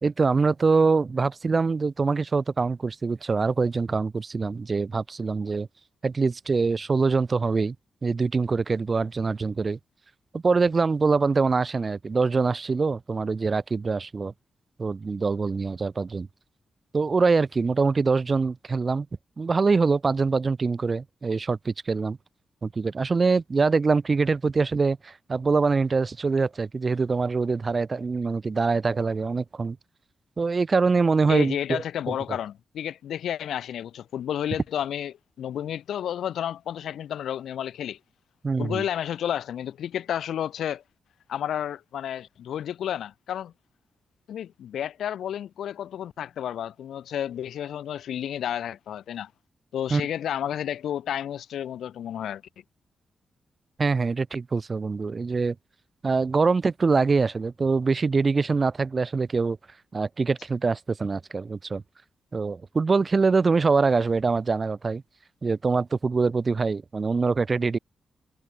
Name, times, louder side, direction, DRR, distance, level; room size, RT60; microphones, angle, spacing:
voice 1, 0.0-5.7 6.0-7.7 8.0-9.8 10.3-14.3 14.8-16.3 16.9-19.1 19.4-22.2 22.6-29.8 30.4-32.1 38.4-38.8 49.9-50.0 53.8-55.5 56.0-59.6 59.9-61.8 62.3-65.0 65.4-67.8, right 4 dB, 30° right, 1.1 m, -24 dB
voice 2, 31.3-38.0 38.6-40.8 41.3-43.5 44.3-49.3 49.7-52.4, left 10 dB, 85° left, 0.8 m, -31 dB
wide cardioid pair, 150°, 0 cm